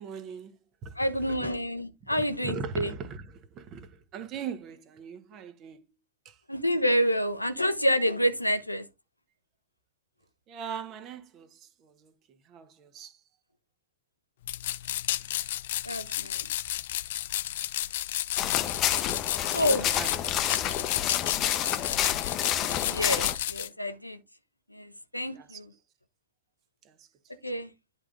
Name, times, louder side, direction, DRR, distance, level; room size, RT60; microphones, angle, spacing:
voice 1, 0.0-1.5 2.0-5.8 6.2-6.4 10.5-13.2 19.6-21.9 25.3-25.6 26.8-27.1, right 6 dB, 35° right, 1.3 m, -41 dB
voice 2, 1.0-2.9 6.5-8.8 15.8-16.5 19.5-19.9 22.8-24.2 24.7-25.7 27.4-27.7, equal, 85° left, 0.8 m, -28 dB
sound 1, 14.5-23.7, left 14 dB, 55° left, 0.3 m, -32 dB
sound 2, 18.4-23.4, left 11 dB, 35° left, 0.8 m, -29 dB
10.5 x 3.7 x 3.8 m
figure-of-eight pair, 90°, 0 cm